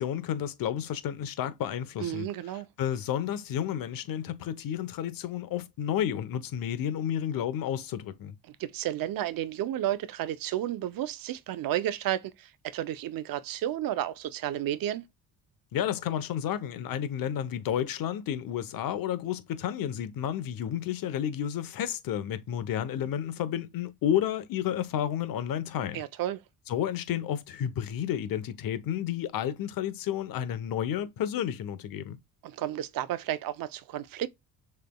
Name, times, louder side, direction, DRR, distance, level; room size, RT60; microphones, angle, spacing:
voice 1, 0.0-2.3 2.8-8.3 15.7-26.0 26.7-32.2, left 10 dB, 70° left, 0.9 m, -31 dB
voice 2, 2.0-2.7 8.5-15.0 25.9-26.4 32.4-34.3, right 12 dB, 65° right, 0.7 m, -32 dB
6.7 x 3.4 x 2.3 m
cardioid pair, 100°, 36 cm